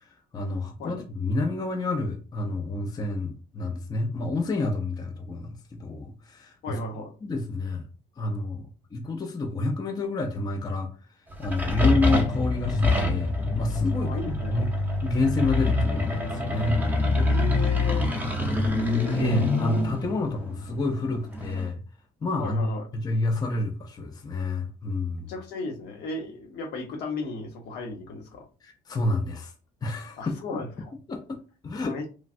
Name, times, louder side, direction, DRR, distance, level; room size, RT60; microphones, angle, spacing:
voice 1, 0.3-6.8 7.2-7.8 8.2-8.6 8.9-10.9 11.4-14.7 15.0-16.8 17.5-17.6 18.4-18.7 19.0-21.8 22.2-25.3 28.6-29.5 29.8-30.6 31.1-31.4 31.6-32.0, left 2 dB, 25° left, 0.4 m, -29 dB
voice 2, 6.6-7.1 14.0-14.5 17.1-18.2 22.4-22.9 25.3-28.4 30.2-30.9 31.8-32.1, left 3 dB, 75° left, 0.9 m, -35 dB
sound 1, 11.3-21.7, left 2 dB, 10° right, 0.7 m, -25 dB
3.1 x 2.3 x 2.5 m
cardioid pair, 110°, 17 cm